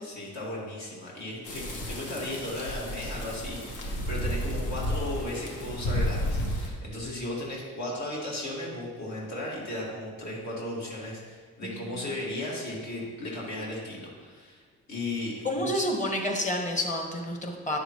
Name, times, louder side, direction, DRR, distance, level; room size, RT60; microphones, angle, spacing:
voice 1, 0.0-14.6 14.9-15.8, left 1 dB, 65° left, -4 dB, 2.0 m, -36 dB
sound 1, 1.4-6.7, equal, 85° left, 1.4 m, -32 dB
voice 2, 11.6-12.0 15.4-17.8, left 1 dB, 25° left, 2 dB, 1.4 m, -29 dB
9.6 x 6.6 x 3.1 m, 1.5 s
cardioid pair, 90°, 30 cm